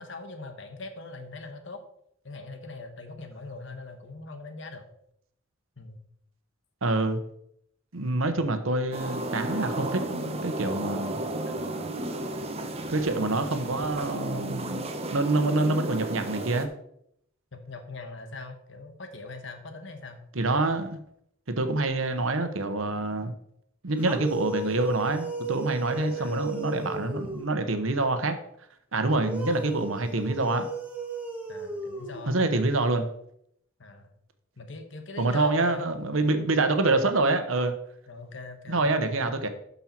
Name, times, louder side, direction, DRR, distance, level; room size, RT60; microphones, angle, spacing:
voice 1, 0.0-1.8 2.2-4.9 5.8-6.0 8.3-8.5 11.4-12.0 17.5-20.2 26.0-26.5 31.5-32.5 33.8-34.1 34.6-37.0 38.1-38.9 39.3-39.4, left 3 dB, 65° left, 1.4 m, -41 dB
voice 2, 6.8-7.2 7.9-11.2 12.9-16.7 20.3-21.0 21.6-23.3 23.8-28.4 28.9-30.7 32.3-33.1 35.2-37.7 38.7-39.5, right 2 dB, 90° right, 1.1 m, -26 dB
sound 1, 8.9-16.7, right 1 dB, 30° right, 1.0 m, -33 dB
sound 2, 24.0-27.7 29.1-32.7, right 2 dB, 10° right, 1.5 m, -35 dB
12.0 x 5.6 x 4.5 m
head